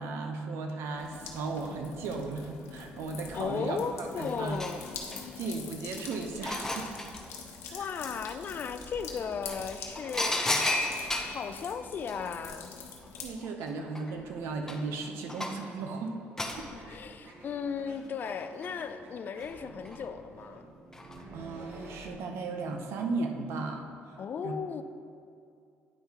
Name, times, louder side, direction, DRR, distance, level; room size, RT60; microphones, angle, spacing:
voice 1, 0.0-4.6 5.4-6.9 7.7-7.9 13.2-16.1 16.6-16.7 21.3-24.5, right 3 dB, 80° right, 4 dB, 0.7 m, -36 dB
sound 1, 1.0-13.3, left 5 dB, 80° left, 0.9 m, -44 dB
voice 2, 3.3-4.8 7.7-10.6 11.3-12.7 16.7-20.7 24.2-24.8, left 6 dB, 45° left, 10 dB, 0.4 m, -36 dB
sound 2, 3.8-3.9 4.2-5.5 6.0-7.2 8.9-9.0 9.5-11.4 13.0-13.1 13.4-15.7 16.4-16.6 18.2-18.9 19.4-20.0 20.9-21.2 21.6-21.7, left 2 dB, 10° left, 0.6 m, -33 dB
sound 3, 14.1-22.1, right 1 dB, 60° right, 1.1 m, -51 dB
9.3 x 5.7 x 2.9 m, 2.4 s
cardioid pair, 110°, 4 cm